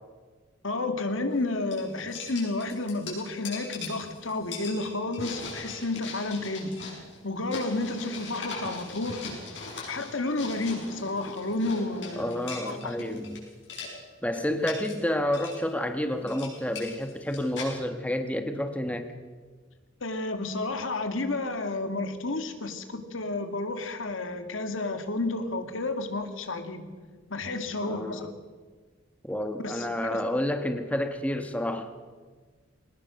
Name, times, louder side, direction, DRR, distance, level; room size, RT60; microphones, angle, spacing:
voice 1, 0.6-6.9 7.2-9.3 9.9-13.0 20.0-26.9 27.3-28.3 29.6-30.2, left 2 dB, 85° left, 7 dB, 2.2 m, -31 dB
sound 1, 1.3-1.4 1.7-13.4 13.6-13.9 14.3-15.0 15.3-15.6 16.1-17.7, left 4 dB, 65° left, 6.3 m, -40 dB
voice 2, 12.2-13.4 14.2-19.1 27.8-28.3 29.2-31.9, left 1 dB, 5° left, 7 dB, 1.2 m, -30 dB
21.5 x 19.0 x 6.4 m, 1.5 s
head